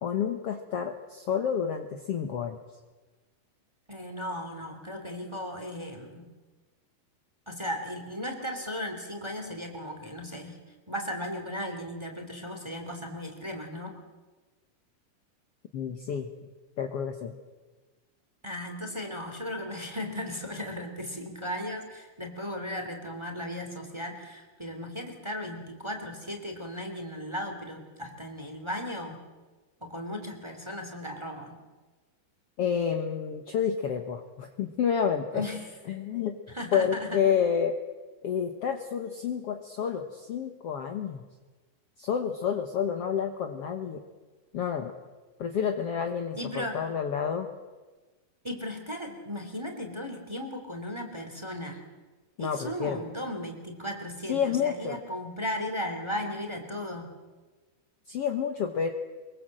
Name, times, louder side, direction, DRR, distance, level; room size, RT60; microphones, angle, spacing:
voice 1, 0.0-2.6 15.7-16.5 16.8-17.3 32.6-35.4 35.9-36.4 36.7-37.7 38.2-41.2 42.0-44.0 44.5-44.9 45.4-47.5 52.4-53.0 54.3-55.0 58.1-58.9, left 7 dB, 55° left, 5 dB, 1.9 m, -29 dB
voice 2, 3.9-6.3 7.5-10.6 10.9-14.0 18.4-29.2 29.8-31.6 35.3-35.7 36.5-37.2 46.4-46.9 48.4-51.8 52.4-57.1, left 1 dB, 10° right, 4 dB, 2.8 m, -36 dB
23.5 x 23.0 x 7.7 m, 1.3 s
omnidirectional pair, 3.8 m